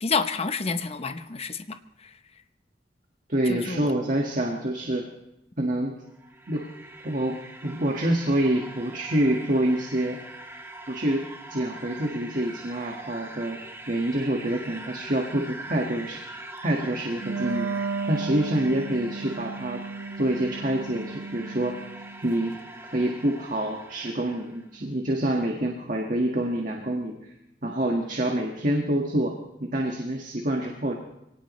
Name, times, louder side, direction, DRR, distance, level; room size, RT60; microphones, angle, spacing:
voice 1, 0.0-1.8 3.5-3.9, left 4 dB, 35° left, 10 dB, 0.8 m, -28 dB
voice 2, 3.3-5.1 5.6-5.9 6.5-6.7 7.0-10.2 10.9-11.2 11.5-13.6 13.9-16.2 16.6-17.7 18.1-19.8 20.2-21.8 22.2-22.5 22.9-27.1 27.6-29.4 29.6-30.9, right 1 dB, 50° right, 1 dB, 1.7 m, -26 dB
sound 1, 6.0-24.7, right 2 dB, 15° right, 1.3 m, -43 dB
Wind instrument woodwind instrument, 17.2-22.2, right 4 dB, 75° right, 0.5 m, -34 dB
23.5 x 18.0 x 3.1 m, 0.84 s
head